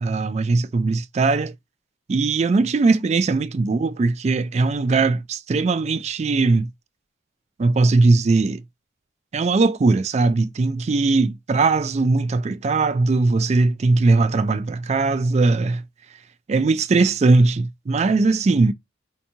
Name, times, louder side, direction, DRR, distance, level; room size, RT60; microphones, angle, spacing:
voice 1, 0.0-1.5 2.1-6.7 7.6-8.6 9.3-15.8 16.5-18.7, right 3 dB, 35° right, 0.3 m, -19 dB
4.6 x 2.8 x 2.6 m
head